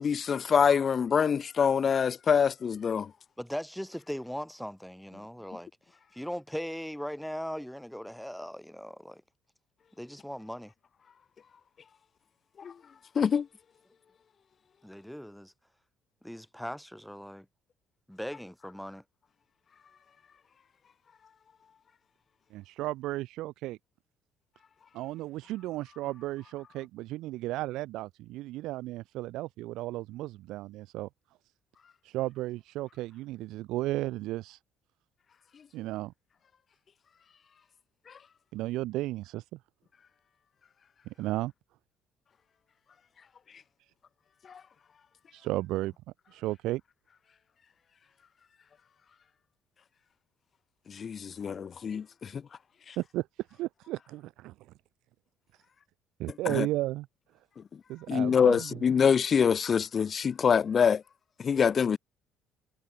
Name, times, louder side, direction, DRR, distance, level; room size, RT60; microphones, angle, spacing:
voice 1, 0.0-3.1 12.6-12.7 13.2-13.5 44.5-44.6 50.9-52.4 52.9-53.0 56.5-56.7 58.1-61.0 61.4-62.0, left 7 dB, 45° left, 2.4 m, -25 dB
voice 2, 3.4-5.7 6.1-9.2 10.0-10.7 14.8-15.5 16.2-17.4 18.1-19.0, equal, ahead, 7.0 m, -39 dB
voice 3, 22.5-23.8 24.9-31.1 32.0-34.6 35.7-36.1 38.5-39.6 41.1-41.5 45.3-45.9 46.3-46.8 53.0-54.5 56.2-57.1 57.9-58.8, right 17 dB, 75° right, 1.9 m, -34 dB
supercardioid pair, 80°, 0 cm